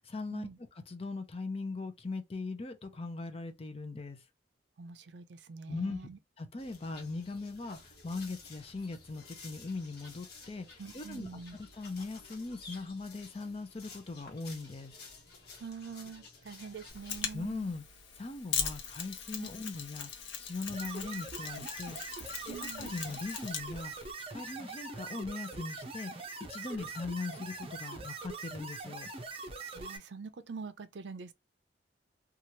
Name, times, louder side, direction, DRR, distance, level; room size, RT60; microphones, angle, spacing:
voice 1, 0.0-4.2 5.7-6.0 6.4-11.3 11.6-14.9 17.3-17.8 18.2-22.0 22.3-29.1, left 3 dB, 35° left, 0.5 m, -40 dB
voice 2, 4.8-6.2 10.8-11.6 15.6-17.7 19.4-19.5 22.5-23.0 26.7-26.9 29.7-31.3, right 4 dB, 75° right, 0.5 m, -45 dB
sound 1, 6.6-17.3, left 4 dB, 60° left, 1.1 m, -53 dB
Mechanisms, 16.9-24.1, left 7 dB, 85° left, 0.8 m, -40 dB
sound 2, 20.7-30.0, right 3 dB, 30° right, 0.6 m, -43 dB
3.0 x 2.4 x 2.7 m
head